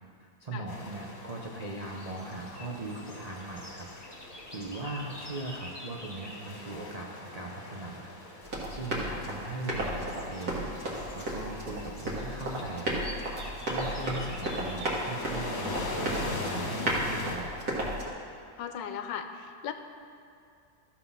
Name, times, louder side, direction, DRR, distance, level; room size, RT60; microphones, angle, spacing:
voice 1, 0.2-3.9 4.2-13.1 13.7-17.5, right 2 dB, 75° right, -2 dB, 0.3 m, -39 dB
sound 1, 0.7-17.4, left 2 dB, 50° left, 1.6 m, -42 dB
sound 2, 1.7-6.5 8.7-9.1 9.5-15.1, left 1 dB, 15° left, 1.2 m, -48 dB
Run, 8.4-18.1, right 1 dB, 55° right, 2.0 m, -34 dB
voice 2, 18.6-19.7, left 8 dB, 80° left, 8 dB, 1.3 m, -37 dB
14.0 x 4.7 x 5.5 m, 2.5 s
omnidirectional pair, 2.0 m